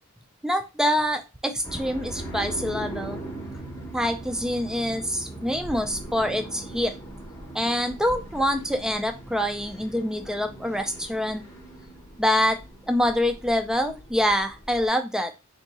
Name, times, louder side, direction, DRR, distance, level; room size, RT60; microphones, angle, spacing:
voice 1, 0.4-3.2 3.9-6.9 7.5-11.4 12.2-12.6 12.9-15.3, equal, 5° right, 7 dB, 0.4 m, -25 dB
sound 1, 1.6-14.9, right 1 dB, 15° left, 0.8 m, -40 dB
3.6 x 2.8 x 4.0 m, 0.27 s
head